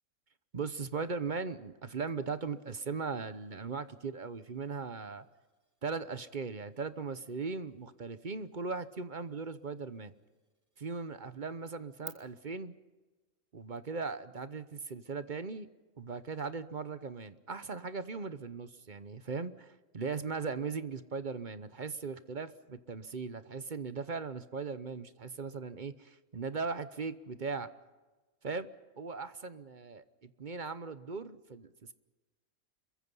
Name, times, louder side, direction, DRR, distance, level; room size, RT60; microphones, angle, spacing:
voice 1, 0.5-5.2 5.8-10.1 10.8-12.7 13.5-15.7 16.0-27.7 28.4-28.7 29.0-31.9, right 4 dB, 40° right, 12 dB, 1.0 m, -38 dB
sound 1, 2.1-12.1, right 1 dB, 10° right, 2.4 m, -59 dB
27.5 x 23.0 x 5.5 m, 1.2 s
omnidirectional pair, 1.4 m